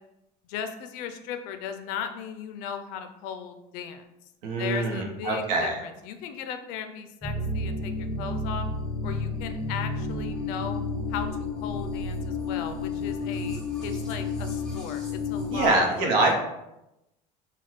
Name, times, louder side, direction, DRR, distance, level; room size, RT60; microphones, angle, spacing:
voice 1, 0.4-4.0 4.6-8.7 9.0-10.8 11.1-16.2, left 8 dB, 65° left, 8 dB, 0.5 m, -37 dB
voice 2, 4.4-5.8 15.5-16.4, right 2 dB, 75° right, 1 dB, 1.1 m, -24 dB
sound 1, 7.2-15.7, left 3 dB, 5° left, 0.8 m, -31 dB
4.1 x 2.3 x 4.5 m, 0.89 s
cardioid pair, 170°, 16 cm